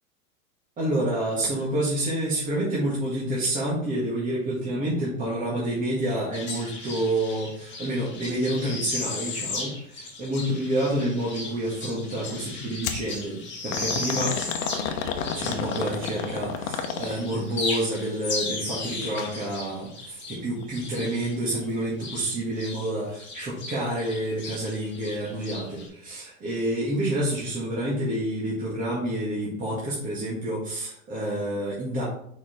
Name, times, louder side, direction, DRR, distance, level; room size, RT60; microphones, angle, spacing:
voice 1, 0.8-14.4 15.3-32.0, right 1 dB, 20° right, -6 dB, 1.7 m, -28 dB
sound 1, 6.3-16.5 16.8-22.9 23.1-25.9, left 3 dB, 25° left, 2.3 m, -35 dB
sound 2, 12.8-13.1 13.7-17.4 19.0-19.3 19.7-19.8 20.6-20.7, left 7 dB, 65° left, 1.1 m, -31 dB
5.0 x 4.3 x 5.0 m, 0.70 s
hypercardioid pair, 130°, 43 cm